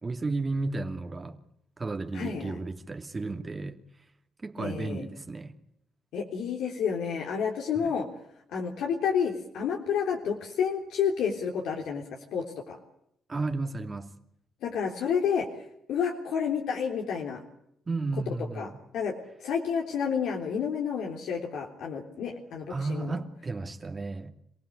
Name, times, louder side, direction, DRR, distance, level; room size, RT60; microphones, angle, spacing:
voice 1, 0.0-1.4 1.8-3.8 4.4-5.5 7.8-7.9 13.3-14.1 17.9-18.8 22.7-24.3, right 3 dB, 30° right, 2.7 m, -33 dB
voice 2, 2.1-2.6 4.6-5.1 6.1-8.1 8.5-12.0 12.3-12.8 14.6-17.4 18.6-18.7 18.9-19.1 19.4-23.1, left 7 dB, 80° left, 3.6 m, -30 dB
27.0 x 17.5 x 8.5 m
cardioid pair, 90°, 0 cm